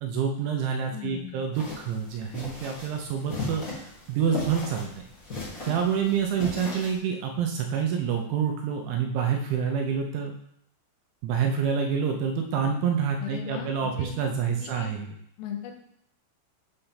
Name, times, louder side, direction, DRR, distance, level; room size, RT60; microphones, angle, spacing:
voice 1, 0.0-3.6 4.1-5.0 5.7-10.3 11.2-15.1, right 7 dB, 80° right, 3 dB, 2.8 m, -27 dB
voice 2, 0.9-1.4 13.2-14.1 14.6-14.9 15.4-15.8, left 7 dB, 85° left, 3 dB, 3.5 m, -37 dB
sound 1, 1.5-7.0, left 2 dB, 65° left, 0.8 m, -37 dB
8.7 x 3.4 x 5.7 m, 0.71 s
omnidirectional pair, 5.7 m